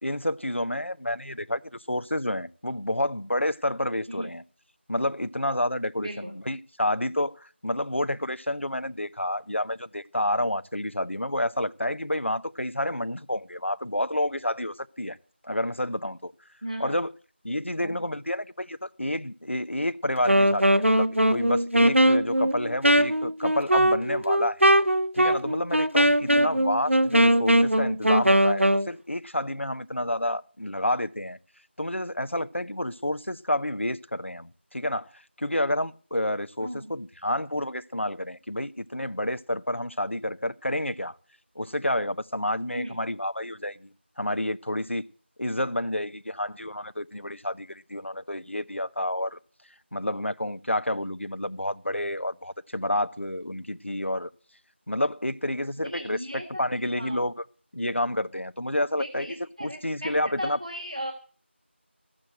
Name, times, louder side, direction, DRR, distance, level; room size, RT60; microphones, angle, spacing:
voice 1, 0.0-4.4 4.9-15.2 15.4-16.3 16.8-17.1 17.4-24.6 25.1-31.4 31.8-41.2 41.6-43.9 44.2-45.0 45.4-49.4 49.9-54.3 54.9-56.2 56.6-57.4 57.7-59.3 59.6-60.6, left 1 dB, 80° left, 0.8 m, -29 dB
voice 2, 6.0-6.3 16.6-16.9 17.8-18.0 26.2-26.5 36.6-36.9 42.7-43.0 55.8-56.6 56.9-57.2 59.0-61.1, equal, 35° right, 1.3 m, -36 dB
Wind instrument woodwind instrument, 20.2-28.9, right 1 dB, 85° right, 0.9 m, -21 dB
14.5 x 7.6 x 7.6 m
figure-of-eight pair, 180°, 7 cm